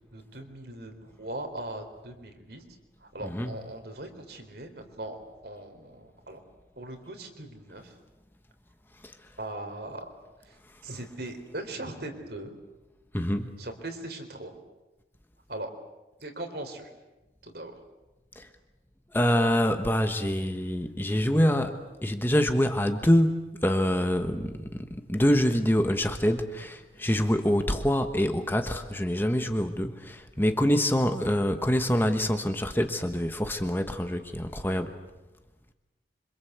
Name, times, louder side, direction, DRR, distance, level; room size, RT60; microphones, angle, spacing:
voice 1, 0.1-2.6 3.0-5.2 5.4-6.4 6.8-7.9 9.4-10.1 10.5-10.6 10.8-12.5 13.6-14.5 15.5-15.7 16.2-16.9 17.4-17.8, right 1 dB, 60° right, 6 dB, 3.9 m, -39 dB
voice 2, 3.2-3.6 9.0-9.3 10.7-10.8 13.1-13.6 18.3-18.5 19.1-34.9, equal, 10° left, 7 dB, 1.3 m, -26 dB
27.0 x 25.5 x 8.2 m, 1.1 s
head